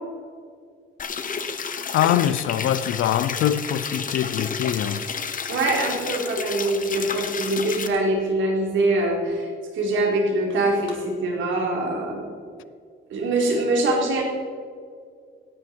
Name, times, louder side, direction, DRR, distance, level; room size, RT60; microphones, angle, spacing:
sound 1, 1.0-7.9, left 6 dB, 45° left, 1.2 m, -31 dB
voice 1, 1.9-5.1, left 11 dB, 80° left, 0.7 m, -23 dB
voice 2, 5.5-12.3 13.1-14.2, right 2 dB, 75° right, 4.0 m, -23 dB
16.5 x 11.0 x 4.6 m
cardioid pair, 90°, 20 cm